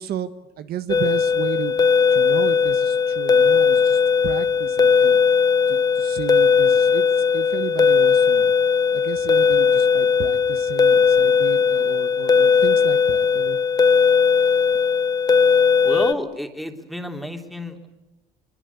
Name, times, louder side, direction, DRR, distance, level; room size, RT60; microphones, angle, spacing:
voice 1, 0.0-1.8 2.1-5.2 5.7-8.5 8.9-13.6 14.4-14.6, right 10 dB, 65° right, 10 dB, 1.4 m, -33 dB
sound 1, 0.9-16.1, left 6 dB, 25° left, 0.8 m, -18 dB
voice 2, 15.8-17.9, equal, ahead, 4 dB, 3.3 m, -29 dB
25.0 x 22.5 x 8.3 m, 1.1 s
cardioid pair, 110°, 17 cm